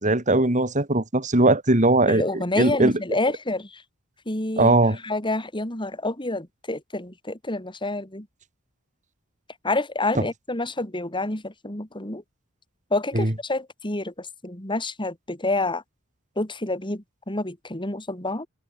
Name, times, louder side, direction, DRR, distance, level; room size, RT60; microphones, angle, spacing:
voice 1, 0.0-2.9 4.6-5.0 10.2-10.3 13.1-13.3, right 2 dB, 35° right, 3.0 m, -20 dB
voice 2, 2.1-3.8 4.3-8.3 9.6-12.2 12.9-15.8 16.4-18.5, left 2 dB, 25° left, 4.0 m, -28 dB
head